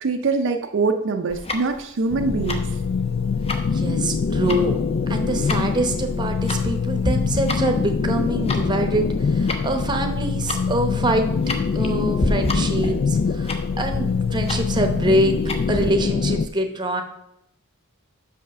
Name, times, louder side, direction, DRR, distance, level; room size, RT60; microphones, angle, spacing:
voice 1, 0.0-2.6, right 4 dB, 55° right, 5 dB, 0.5 m, -23 dB
Tick-tock, 1.3-15.9, left 1 dB, 25° left, 0.8 m, -32 dB
sound 1, 2.1-16.5, left 5 dB, 45° left, 0.3 m, -24 dB
voice 2, 3.7-4.8 5.1-9.1 9.3-11.3 11.7-15.4 15.7-17.0, right 1 dB, 20° right, 5 dB, 0.8 m, -24 dB
5.8 x 5.5 x 6.6 m, 0.81 s
head